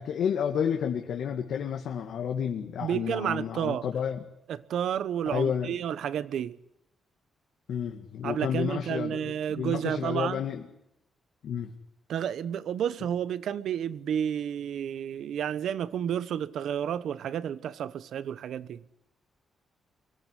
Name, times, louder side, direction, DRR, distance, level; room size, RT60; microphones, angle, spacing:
voice 1, 0.0-4.2 5.3-5.8 7.7-10.6 11.4-11.7, left 8 dB, 70° left, 2.1 m, -31 dB
voice 2, 2.8-3.8 4.5-6.6 8.2-10.4 12.1-18.8, right 9 dB, 70° right, 1.1 m, -31 dB
24.5 x 17.5 x 10.0 m
wide cardioid pair, 180°, 0 cm